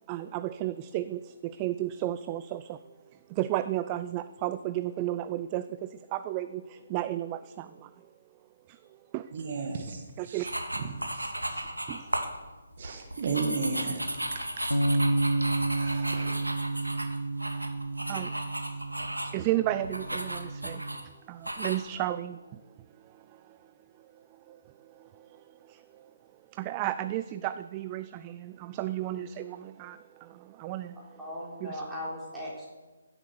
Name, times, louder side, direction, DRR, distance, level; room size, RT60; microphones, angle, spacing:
voice 1, 0.1-2.9 3.3-7.9 8.7-8.8 9.1-9.3 10.2-10.5 11.9-12.1 18.1-18.4 19.3-22.6 23.0-23.6 24.5-24.6 25.0-26.0 26.5-31.3 31.6-31.8, right 14 dB, 20° right, 13 dB, 0.4 m, -34 dB
voice 2, 9.3-10.5 11.1-11.3 12.8-14.0 14.6-14.8 15.7-16.4, right 4 dB, 40° right, 6 dB, 1.5 m, -34 dB
sound 1, 10.4-12.3 12.7-19.4 19.8-21.0 21.4-21.8, right 1 dB, 80° right, 2.0 m, -35 dB
sound 2, 14.7-21.0, right 2 dB, 90° left, 1.0 m, -31 dB
voice 3, 31.2-32.6, left 1 dB, 5° right, -7 dB, 3.7 m, -38 dB
15.5 x 8.0 x 7.0 m, 1.2 s
figure-of-eight pair, 140°, 0 cm